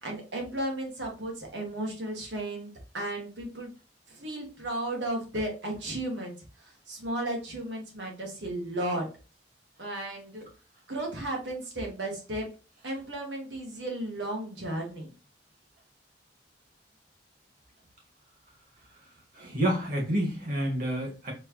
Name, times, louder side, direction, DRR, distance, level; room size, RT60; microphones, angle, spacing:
voice 1, 0.0-3.7 4.1-6.3 6.9-9.1 9.8-10.5 10.9-12.5 12.8-15.1, right 1 dB, 80° right, 0 dB, 1.8 m, -34 dB
voice 2, 19.3-21.3, right 1 dB, 55° right, 0 dB, 1.8 m, -29 dB
4.6 x 3.3 x 3.0 m, 0.33 s
head